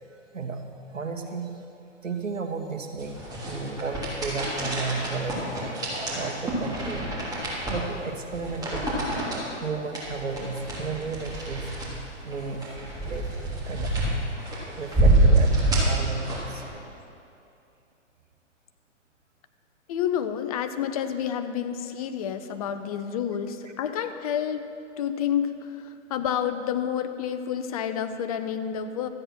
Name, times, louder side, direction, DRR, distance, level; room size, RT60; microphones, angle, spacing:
voice 1, 0.1-0.7 0.9-1.6 2.0-3.2 3.5-5.8 6.1-7.1 7.7-9.2 9.6-11.8 12.2-14.0 14.8-16.6, right 4 dB, 85° right, 5 dB, 1.5 m, -33 dB
sound 1, 3.0-16.7, right 2 dB, 10° right, 3.0 m, -27 dB
voice 2, 19.9-24.7 25.0-29.1, left 9 dB, 30° left, 9 dB, 0.6 m, -29 dB
13.5 x 9.0 x 6.1 m, 2.7 s
hypercardioid pair, 130°, 37 cm